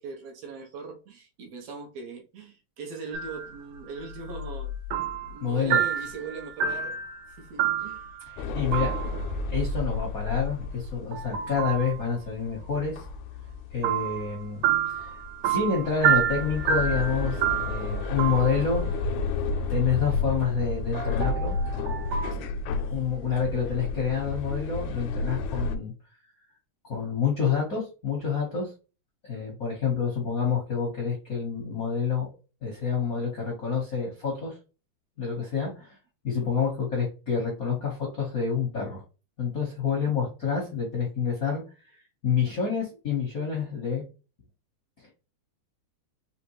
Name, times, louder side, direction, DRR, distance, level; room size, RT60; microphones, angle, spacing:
voice 1, 0.0-4.7 5.2-8.1 22.4-22.5 22.8-23.0, right 4 dB, 70° right, 1.8 m, -41 dB
sound 1, 3.1-3.6 4.0-5.4 5.7-8.4 8.7-9.3 11.1-11.9 13.8-19.2 21.0-22.3, right 9 dB, 85° right, 2.1 m, -29 dB
voice 2, 5.4-5.8 8.3-8.9 9.5-13.0 13.7-15.2 15.4-18.9 19.7-21.6 22.7-25.9 26.8-28.7 29.2-32.3 32.6-34.6 35.2-36.0 36.2-39.0 39.4-42.0 42.2-44.0 45.0-45.1, left 6 dB, 60° left, 0.9 m, -28 dB
sound 2, 8.4-25.8, left 3 dB, 80° left, 1.8 m, -32 dB
5.1 x 3.0 x 3.0 m
omnidirectional pair, 3.4 m